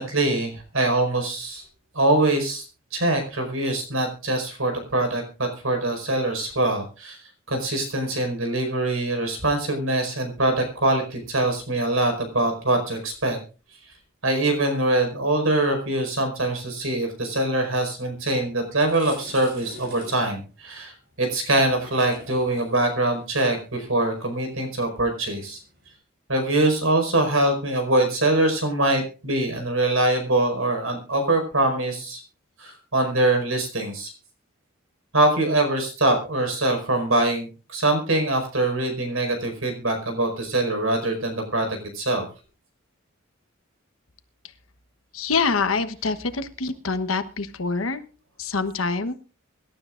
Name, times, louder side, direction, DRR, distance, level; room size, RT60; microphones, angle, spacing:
voice 1, 0.0-1.6 1.9-2.6 2.9-7.2 7.5-13.4 14.2-25.6 26.3-32.2 32.6-34.1 35.1-41.7 41.9-42.2, right 2 dB, 80° right, 5 dB, 5.0 m, -23 dB
sound 1, 18.2-18.3 18.6-25.9, equal, 55° right, 7.4 m, -46 dB
voice 2, 45.1-48.0 48.4-49.1, left 4 dB, 85° left, 10 dB, 1.2 m, -25 dB
24.5 x 12.5 x 2.5 m, 0.34 s
head